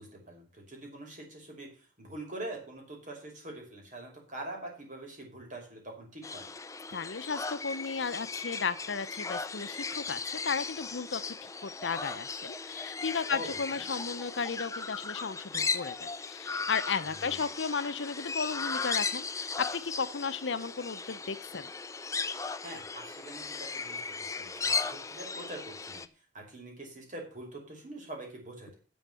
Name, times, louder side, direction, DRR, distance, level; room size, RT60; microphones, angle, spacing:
voice 1, 0.0-6.5 13.3-13.8 17.1-17.4 22.6-24.0 24.4-26.0 26.3-28.8, right 1 dB, 40° right, 1 dB, 5.6 m, -44 dB
sound 1, 6.2-26.1, left 4 dB, 15° left, 0.6 m, -37 dB
voice 2, 6.9-11.4 11.6-21.7, left 5 dB, 70° left, 13 dB, 0.8 m, -34 dB
11.5 x 7.2 x 7.0 m, 0.37 s
head